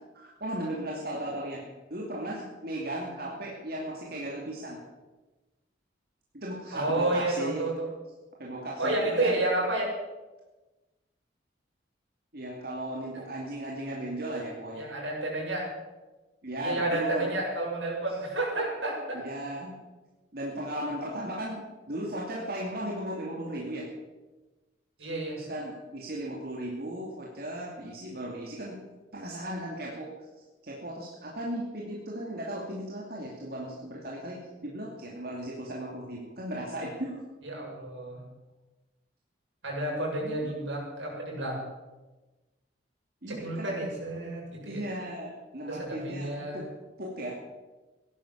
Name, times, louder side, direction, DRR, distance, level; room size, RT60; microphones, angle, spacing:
voice 1, 0.2-4.8 6.3-7.7 8.4-9.4 12.3-14.8 16.4-17.4 19.2-19.8 20.3-23.9 25.4-28.8 29.1-30.1 30.6-37.2 40.2-40.5 43.2-43.7 44.7-46.7 47.0-47.3, right 1 dB, 55° right, -2 dB, 2.7 m, -36 dB
voice 2, 6.7-7.9 8.8-9.9 14.7-15.7 16.6-19.2 25.0-25.4 37.4-38.2 39.6-41.5 43.3-44.8 45.7-46.6, right 2 dB, 85° right, -3 dB, 7.7 m, -30 dB
16.5 x 12.0 x 7.4 m, 1.2 s
head